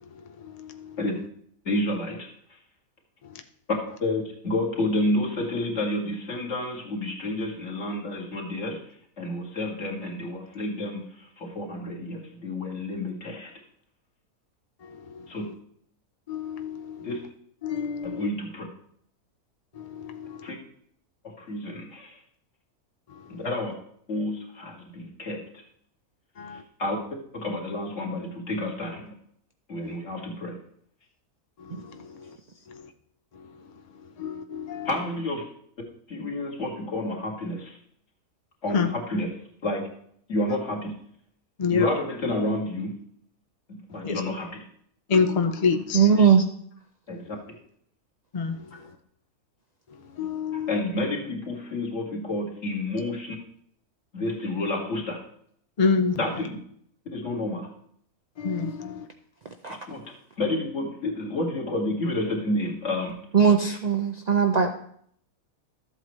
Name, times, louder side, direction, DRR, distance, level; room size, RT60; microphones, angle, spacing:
voice 1, 1.6-2.3 4.0-8.8 9.2-13.5 15.3-15.5 17.0-17.2 18.0-18.6 20.4-20.6 21.2-22.2 23.3-23.7 24.1-25.4 26.8-27.0 27.3-29.1 29.7-30.6 34.8-35.4 36.1-37.8 38.6-39.3 39.6-39.9 40.3-40.9 41.7-43.0 43.7-44.6 45.5-45.6 47.1-47.4 48.7-48.9 50.5-53.4 54.1-55.2 56.2-56.6 57.1-57.7 58.8-59.0 59.9-60.0 60.4-63.2, left 1 dB, 50° left, 2.3 m, -30 dB
voice 2, 16.3-17.0 17.6-18.2 19.8-20.4 26.4-26.6 34.2-34.9 38.7-38.9 41.6-41.9 44.0-44.1 45.1-46.0 48.3-48.5 50.2-50.8 55.8-56.2 58.4-59.0, left 5 dB, 80° left, 0.3 m, -26 dB
voice 3, 45.9-46.4 59.6-59.8 63.3-64.7, right 6 dB, 80° right, 0.3 m, -19 dB
13.0 x 8.0 x 3.1 m
omnidirectional pair, 1.6 m